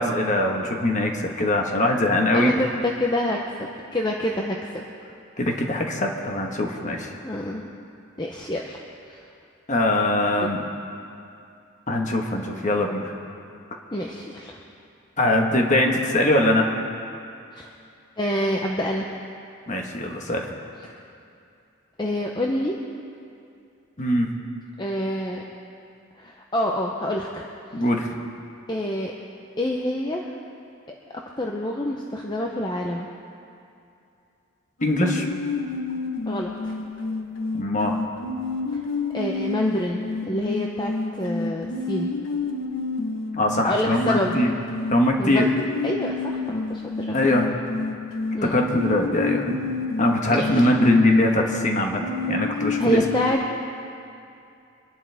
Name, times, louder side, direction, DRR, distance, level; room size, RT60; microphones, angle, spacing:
voice 1, 0.0-2.5 5.4-7.1 9.7-10.6 11.9-13.1 15.2-16.7 19.7-20.4 24.0-24.3 27.7-28.1 34.8-35.2 37.6-38.0 43.3-44.5 44.9-45.5 47.1-47.5 48.4-49.6 50.0-53.0, left 1 dB, 35° left, 2 dB, 1.4 m, -22 dB
voice 2, 2.3-4.9 7.2-7.6 8.2-8.8 9.1-9.2 10.4-10.5 13.9-14.6 17.5-17.7 18.2-19.1 20.8-20.9 22.0-22.8 24.8-25.4 26.2-27.4 28.7-29.1 29.6-30.2 31.4-33.1 36.3-36.7 39.1-42.1 43.6-44.4 45.2-45.4 45.8-47.2 48.3-48.6 50.3-50.7 52.8-53.4, left 1 dB, 20° left, -1 dB, 0.8 m, -27 dB
sound 1, 34.8-53.3, left 3 dB, 75° left, 1.1 m, -30 dB
24.5 x 11.5 x 3.5 m, 2.6 s
head